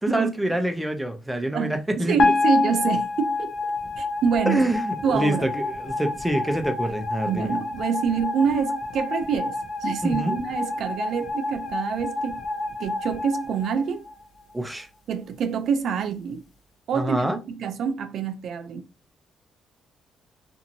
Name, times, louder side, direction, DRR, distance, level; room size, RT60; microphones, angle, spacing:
voice 1, 0.0-2.1 4.5-7.6 10.0-10.4 14.5-14.9 16.9-17.4, right 1 dB, 5° right, 0.6 m, -26 dB
voice 2, 1.5-4.6 5.0-5.5 7.3-12.4 12.8-14.0 15.1-16.4 16.9-18.8, right 6 dB, 70° right, 0.3 m, -26 dB
sound 1, 2.2-14.5, left 3 dB, 65° left, 0.6 m, -28 dB
2.8 x 2.5 x 2.6 m
cardioid pair, 90°, 0 cm